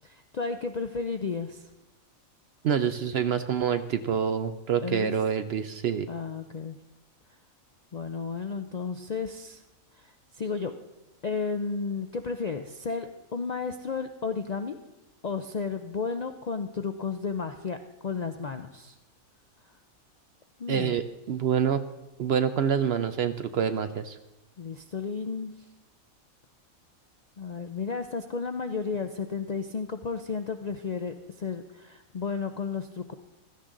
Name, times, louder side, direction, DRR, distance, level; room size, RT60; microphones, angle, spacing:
voice 1, 0.0-1.7 4.8-5.1 6.1-6.8 7.9-9.6 10.0-10.7 11.2-14.8 15.2-17.8 18.0-18.9 20.6-21.0 24.6-25.5 27.4-33.1, left 5 dB, 55° left, 7 dB, 0.4 m, -33 dB
voice 2, 2.6-6.1 20.7-21.8 22.2-24.2, right 7 dB, 65° right, 10 dB, 0.7 m, -27 dB
16.0 x 13.5 x 3.8 m, 1.0 s
omnidirectional pair, 1.4 m